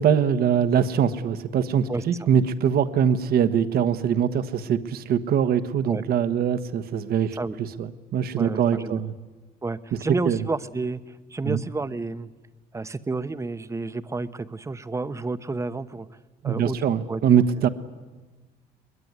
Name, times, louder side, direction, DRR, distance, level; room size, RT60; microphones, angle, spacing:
voice 1, 0.0-9.1 10.2-10.4 11.4-11.6 16.4-17.7, right 8 dB, 65° right, 12 dB, 1.3 m, -23 dB
voice 2, 8.4-9.0 9.6-12.3 12.7-16.1 16.4-17.2 17.6-17.7, right 3 dB, 15° right, 12 dB, 1.0 m, -31 dB
22.5 x 21.0 x 9.7 m, 1.2 s
cardioid pair, 110°, 17 cm